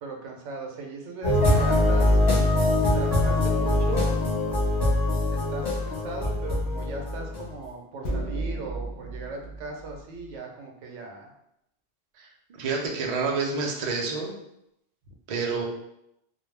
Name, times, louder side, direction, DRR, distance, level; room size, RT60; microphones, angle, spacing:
voice 1, 0.0-2.2 2.9-4.2 5.3-11.3, right 3 dB, 80° right, 1 dB, 0.9 m, -38 dB
sound 1, 1.2-7.6, left 2 dB, 20° left, 0.8 m, -23 dB
sound 2, 8.0-10.4, right 2 dB, 60° left, 0.5 m, -34 dB
voice 2, 12.2-14.3 15.3-15.6, right 4 dB, 60° right, 0 dB, 0.4 m, -28 dB
2.3 x 2.0 x 3.1 m, 0.79 s
omnidirectional pair, 1.2 m